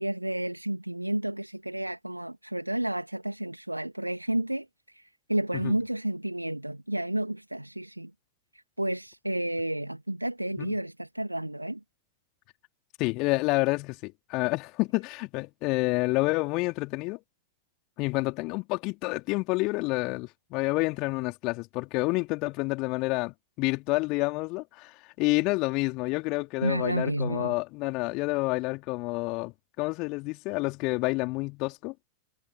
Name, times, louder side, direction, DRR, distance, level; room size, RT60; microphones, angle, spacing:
voice 1, 0.0-4.7 5.0-5.1 5.3-8.1 8.8-11.8 26.6-27.5, right 1 dB, 85° right, 2.6 m, -31 dB
voice 2, 13.0-17.2 18.0-32.0, left 25 dB, 40° left, 3.0 m, -29 dB
figure-of-eight pair, 90°, 0 cm